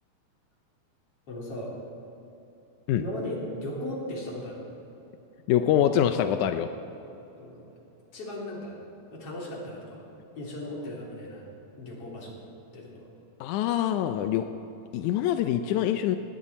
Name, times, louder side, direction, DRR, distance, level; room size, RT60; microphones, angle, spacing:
voice 1, 1.3-1.7 3.0-4.7 7.4-7.7 8.1-8.8 9.1-10.0 10.4-11.4 11.8-12.4 12.7-13.1, left 1 dB, 40° left, -3 dB, 4.0 m, -37 dB
voice 2, 5.5-6.7 13.4-14.5 14.9-16.2, left 10 dB, 80° left, 8 dB, 1.8 m, -24 dB
19.0 x 18.0 x 4.2 m, 3.0 s
omnidirectional pair, 4.1 m